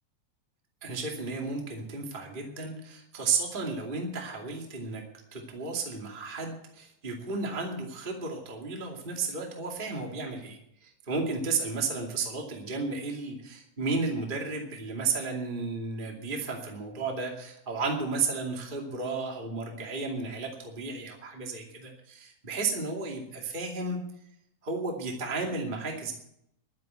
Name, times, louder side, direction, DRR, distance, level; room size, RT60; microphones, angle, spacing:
voice 1, 0.8-5.0 5.3-24.0 24.6-26.1, right 4 dB, 15° right, 0 dB, 2.3 m, -33 dB
11.5 x 10.5 x 8.3 m, 0.75 s
omnidirectional pair, 3.6 m